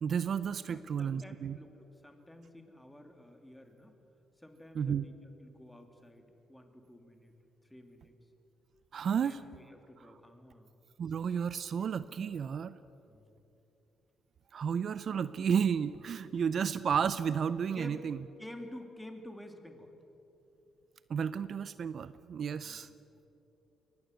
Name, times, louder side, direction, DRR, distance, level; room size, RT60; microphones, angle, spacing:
voice 1, 0.0-1.6 4.8-5.0 8.9-9.4 11.0-12.7 14.5-18.2 21.1-22.9, right 7 dB, 55° right, 15 dB, 0.6 m, -32 dB
voice 2, 0.6-4.0 4.4-7.3 7.6-8.1 9.2-10.7 13.1-13.4 16.3-16.4 17.7-18.0 18.4-19.9 22.6-23.3, left 1 dB, 5° left, 5 dB, 2.7 m, -51 dB
23.5 x 18.0 x 7.9 m, 3.0 s
cardioid pair, 90°, 0 cm